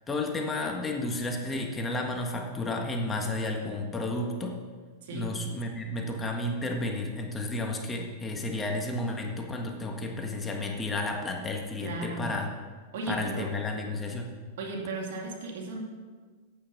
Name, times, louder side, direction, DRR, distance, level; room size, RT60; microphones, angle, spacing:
voice 1, 0.1-4.6 5.1-12.5 13.1-14.3, left 2 dB, 15° left, 2 dB, 1.5 m, -32 dB
voice 2, 11.8-12.3 12.9-13.5 14.6-15.8, right 3 dB, 70° right, 1 dB, 2.4 m, -35 dB
8.9 x 8.6 x 5.9 m, 1.5 s
hypercardioid pair, 120°, 0 cm